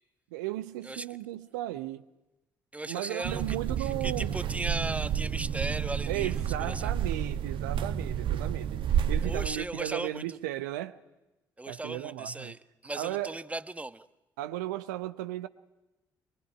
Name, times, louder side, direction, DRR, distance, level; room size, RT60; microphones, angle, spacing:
voice 1, 0.3-2.0 2.8-4.4 6.1-11.0 11.7-12.5 12.9-13.4 14.4-15.5, right 14 dB, 75° right, 0.9 m, -35 dB
voice 2, 2.7-6.3 6.6-6.9 9.2-10.2 11.6-14.1, right 2 dB, 15° right, 1.2 m, -37 dB
sound 1, 3.2-9.5, right 8 dB, 55° right, 1.3 m, -30 dB
23.5 x 23.0 x 9.9 m
figure-of-eight pair, 45°, 10 cm